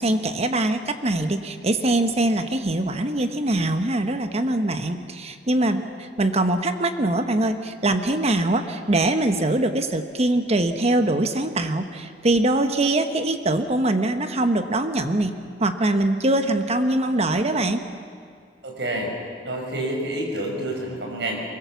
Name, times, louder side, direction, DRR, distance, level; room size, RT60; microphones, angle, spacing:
voice 1, 0.0-15.3 15.6-17.8, right 1 dB, 35° right, 8 dB, 1.1 m, -23 dB
voice 2, 18.6-19.1 19.4-21.4, right 1 dB, 75° right, 1 dB, 5.5 m, -28 dB
23.5 x 22.5 x 7.1 m, 2.1 s
head